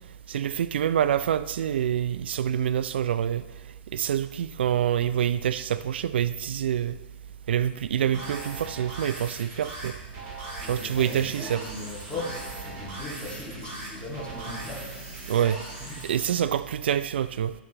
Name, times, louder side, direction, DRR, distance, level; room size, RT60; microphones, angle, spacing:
voice 1, 0.3-3.4 3.9-7.0 7.5-9.9 10.6-11.6 15.3-15.6 16.0-17.5, right 9 dB, 75° right, 0.3 m, -26 dB
sound 1, 8.1-16.1, right 2 dB, 40° right, 3.3 m, -39 dB
voice 2, 10.6-14.9 15.8-16.0 16.3-16.5, left 2 dB, 20° left, 2.7 m, -38 dB
11.0 x 7.0 x 3.3 m
hypercardioid pair, 110°, 6 cm